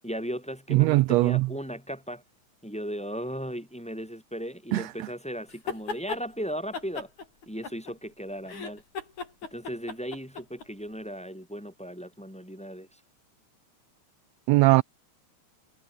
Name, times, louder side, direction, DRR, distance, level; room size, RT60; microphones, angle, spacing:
voice 1, 0.0-2.2 2.6-7.1 7.5-8.8 9.5-12.9, equal, ahead, 5.0 m, -36 dB
voice 2, 0.7-1.5 4.7-4.9 14.5-14.8, right 19 dB, 80° right, 1.6 m, -20 dB
sound 1, 5.5-6.2 6.7-8.1 8.5-10.7, left 4 dB, 80° left, 6.6 m, -36 dB
omnidirectional pair, 3.4 m